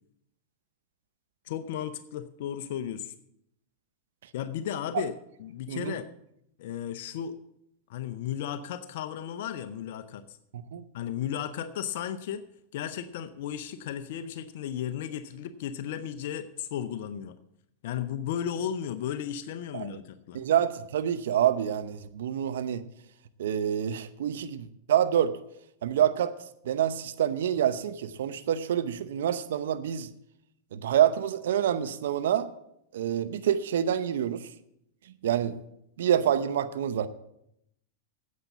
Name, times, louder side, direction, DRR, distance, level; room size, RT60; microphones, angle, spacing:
voice 1, 1.4-3.1 4.3-5.1 5.4-6.1 6.6-7.4 7.9-10.4 10.9-12.4 12.7-17.4 17.8-20.4, left 9 dB, 65° left, 11 dB, 0.7 m, -34 dB
voice 2, 10.5-10.8 19.7-20.0 20.3-22.8 23.4-25.4 25.8-26.3 26.7-30.1 30.7-32.5 32.9-34.5 35.2-35.6 36.0-37.1, right 10 dB, 75° right, 12 dB, 0.7 m, -27 dB
9.5 x 8.3 x 7.3 m, 0.77 s
hypercardioid pair, 105°, 0 cm